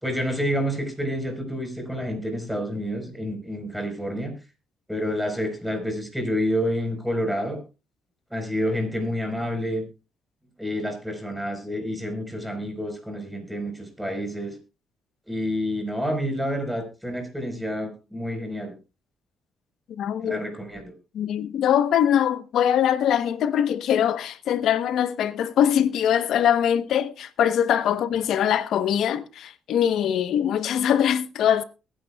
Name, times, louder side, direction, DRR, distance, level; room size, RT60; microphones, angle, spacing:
voice 1, 0.0-4.3 4.9-7.6 8.3-9.8 10.6-14.6 15.3-18.7 20.2-21.0, equal, 5° right, 4.3 m, -28 dB
voice 2, 20.0-20.4 21.1-31.6, left 9 dB, 75° left, 0.9 m, -22 dB
21.5 x 10.5 x 2.3 m
cardioid pair, 90°, 0 cm